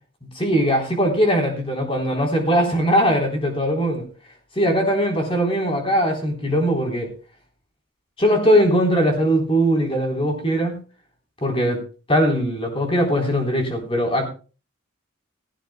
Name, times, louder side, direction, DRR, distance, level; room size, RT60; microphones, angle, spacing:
voice 1, 0.4-4.1 4.6-7.1 8.2-10.8 11.4-11.8 12.1-14.3, equal, 25° left, 3.7 m, -20 dB
16.5 x 16.0 x 2.2 m
head